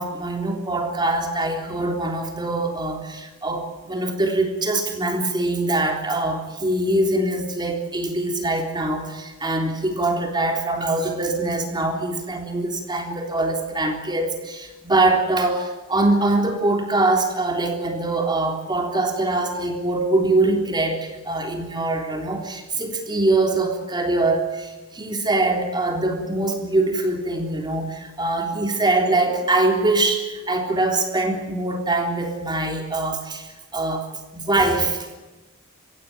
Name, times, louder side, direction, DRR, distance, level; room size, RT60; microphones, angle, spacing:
voice 1, 0.0-34.1 34.3-35.2, right 2 dB, 20° right, 2 dB, 3.6 m, -23 dB
25.0 x 16.5 x 8.9 m, 1.2 s
head